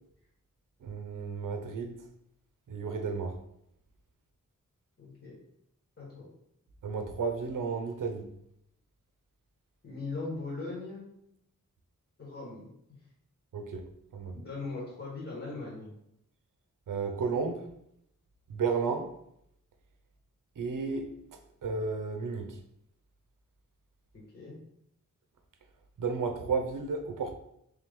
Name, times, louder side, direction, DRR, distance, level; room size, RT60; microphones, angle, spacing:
voice 1, 0.8-2.0 2.7-3.4 6.8-8.3 13.5-13.8 14.1-14.4 16.9-17.7 18.5-19.1 20.6-21.1 21.6-22.6 26.0-27.3, right 5 dB, 75° right, 6 dB, 0.6 m, -32 dB
voice 2, 5.0-5.3 6.0-6.3 9.8-11.0 12.2-12.7 14.3-15.9 24.3-24.6, left 3 dB, 45° left, -6 dB, 1.4 m, -39 dB
3.4 x 3.0 x 3.6 m, 0.76 s
wide cardioid pair, 70°, 32 cm